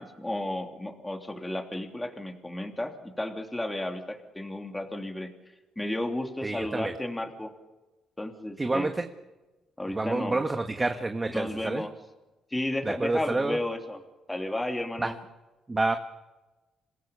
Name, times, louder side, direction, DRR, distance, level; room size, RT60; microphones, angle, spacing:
voice 1, 0.0-5.3 5.8-7.5 8.2-8.9 9.8-10.4 11.3-11.9 12.5-14.0 14.3-15.1, left 1 dB, 10° left, 3 dB, 3.1 m, -33 dB
voice 2, 6.4-6.9 8.6-9.1 9.9-11.8 12.8-13.6 15.0-15.1 15.7-16.0, right 2 dB, 20° right, 6 dB, 1.5 m, -28 dB
27.0 x 17.0 x 7.1 m, 1.1 s
cardioid pair, 90°, 0 cm